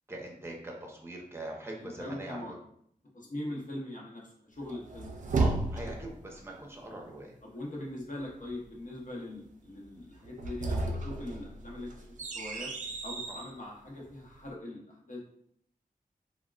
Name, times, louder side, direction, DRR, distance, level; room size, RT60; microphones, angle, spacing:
voice 1, 0.1-2.6 5.4-7.4 13.3-13.4, right 1 dB, 15° right, 0 dB, 0.6 m, -42 dB
voice 2, 1.8-2.6 3.1-5.2 6.9-7.1 7.4-12.7 13.0-15.2, left 1 dB, 60° left, -3 dB, 0.8 m, -41 dB
sound 1, 4.7-6.2 10.2-13.5, right 3 dB, 55° right, 0.4 m, -33 dB
3.5 x 2.1 x 2.3 m, 0.67 s
wide cardioid pair, 85°, 15 cm